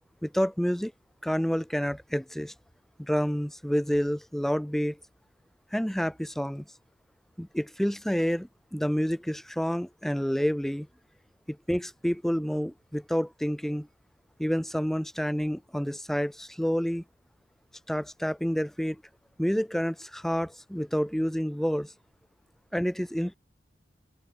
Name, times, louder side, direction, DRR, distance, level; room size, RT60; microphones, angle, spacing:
voice 1, 0.2-0.9 1.2-2.5 3.0-5.0 5.7-6.6 7.4-10.9 11.5-13.9 14.4-17.0 17.9-19.0 19.4-21.9 22.7-23.3, equal, ahead, 0.4 m, -29 dB
open air
head